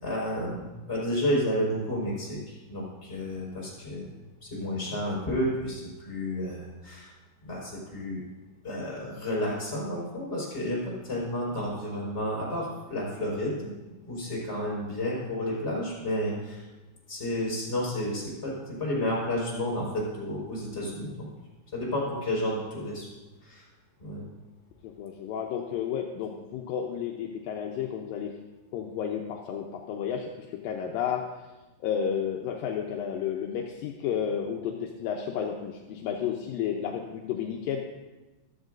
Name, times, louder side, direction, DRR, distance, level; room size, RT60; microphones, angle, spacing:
voice 1, 0.0-7.1 7.4-8.2 8.6-13.7 14.0-16.6 17.1-21.3 21.7-23.1 23.4-23.6 24.0-24.2, left 1 dB, 15° left, -5 dB, 4.7 m, -31 dB
voice 2, 24.8-28.3 28.7-31.3 31.8-37.9, left 8 dB, 80° left, 1 dB, 2.1 m, -32 dB
14.5 x 13.0 x 2.6 m, 1.1 s
omnidirectional pair, 4.6 m